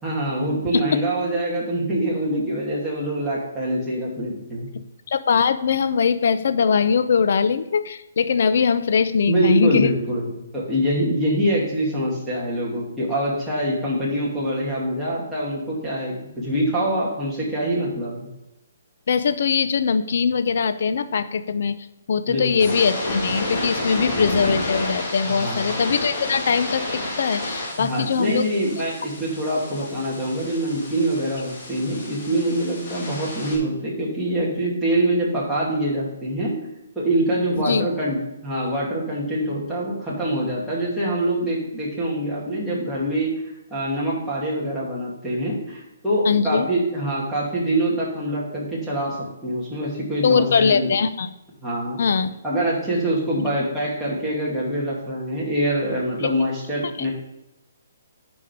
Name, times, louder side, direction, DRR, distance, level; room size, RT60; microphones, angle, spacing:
voice 1, 0.0-4.7 9.3-18.3 22.3-22.7 25.3-25.7 27.8-36.5 37.0-43.3 43.7-49.2 49.4-50.9 51.6-52.0 52.4-57.1, right 1 dB, 5° right, -8 dB, 2.5 m, -24 dB
voice 2, 5.1-9.9 19.1-21.8 22.1-28.5 28.8-28.9 37.6-37.9 46.2-46.7 50.2-51.3 52.0-52.3, left 6 dB, 60° left, 11 dB, 0.6 m, -21 dB
sound 1, 22.4-33.5, left 2 dB, 30° left, 2.5 m, -30 dB
9.4 x 5.2 x 5.2 m, 0.91 s
hypercardioid pair, 165°, 0 cm